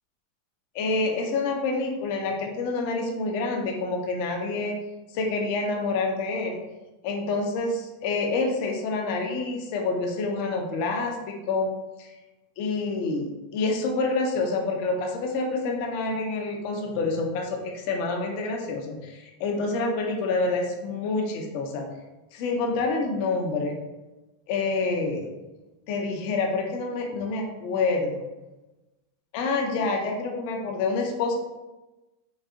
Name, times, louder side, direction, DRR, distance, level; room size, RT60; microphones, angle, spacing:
voice 1, 0.7-4.8 5.1-6.6 7.0-11.7 12.0-12.1 12.6-21.8 22.3-23.8 24.5-25.3 25.9-28.3 29.3-31.4, left 3 dB, 55° left, 1 dB, 0.6 m, -27 dB
4.0 x 2.6 x 2.5 m, 1.1 s
supercardioid pair, 125°, 0 cm